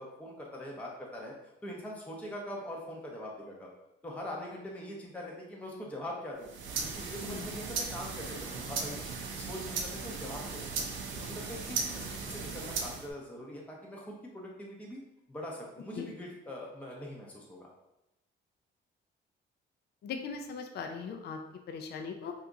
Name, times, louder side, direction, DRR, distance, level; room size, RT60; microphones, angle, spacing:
voice 1, 0.0-1.3 1.6-3.7 4.0-6.5 6.8-10.7 11.1-15.0 15.3-17.7, left 1 dB, 5° left, -3 dB, 0.6 m, -42 dB
sound 1, 6.4-13.1, right 4 dB, 75° right, 0.6 m, -37 dB
voice 2, 20.0-21.4 21.7-22.3, left 5 dB, 55° left, 4 dB, 0.4 m, -39 dB
2.8 x 2.4 x 3.6 m, 0.89 s
cardioid pair, 90°, 20 cm